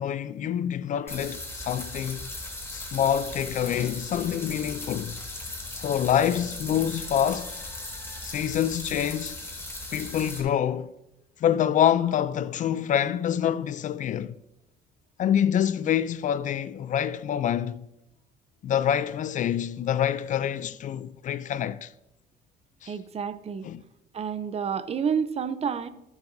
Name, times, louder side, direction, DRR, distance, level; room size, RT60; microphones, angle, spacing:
voice 1, 0.0-2.3 2.7-5.2 5.7-7.5 8.2-9.4 9.9-10.9 11.4-14.3 15.2-17.8 18.6-21.9 22.8-22.9 23.6-23.8, left 9 dB, 50° left, 0.4 m, -26 dB
sound 1, 1.1-10.4, left 2 dB, 15° left, 3.1 m, -38 dB
voice 2, 22.9-23.7 24.1-25.9, right 7 dB, 40° right, 0.7 m, -29 dB
18.5 x 7.2 x 2.7 m
cardioid pair, 110°, 17 cm